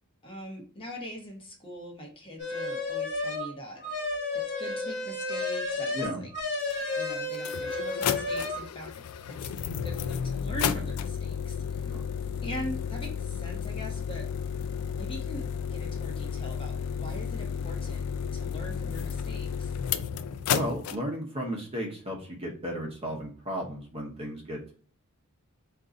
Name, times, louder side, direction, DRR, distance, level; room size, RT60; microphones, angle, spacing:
voice 1, 0.2-3.8 4.6-6.3 7.0-8.9 9.3-9.5 9.8-11.9 12.4-14.3 15.0-18.0 18.3-20.0, equal, 25° left, 1 dB, 0.9 m, -41 dB
sound 1, 2.4-3.5 3.8-8.6, left 3 dB, 55° left, 1.3 m, -32 dB
voice 2, 5.9-6.2 11.8-12.1 20.5-24.7, equal, 25° right, 0 dB, 0.9 m, -34 dB
sound 2, 6.7-6.8 7.3-21.0, left 7 dB, 80° left, 0.4 m, -32 dB
3.7 x 2.6 x 3.8 m, 0.43 s
head